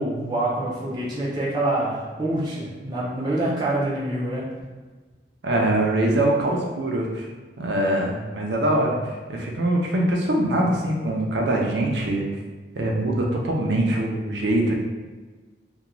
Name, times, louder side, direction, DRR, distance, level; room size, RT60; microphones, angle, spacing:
voice 1, 0.0-4.4, right 1 dB, 25° right, -6 dB, 0.4 m, -26 dB
voice 2, 5.4-7.3 7.6-12.3 12.8-14.8, right 1 dB, 80° right, -1 dB, 0.5 m, -23 dB
2.4 x 2.2 x 2.9 m, 1.4 s
head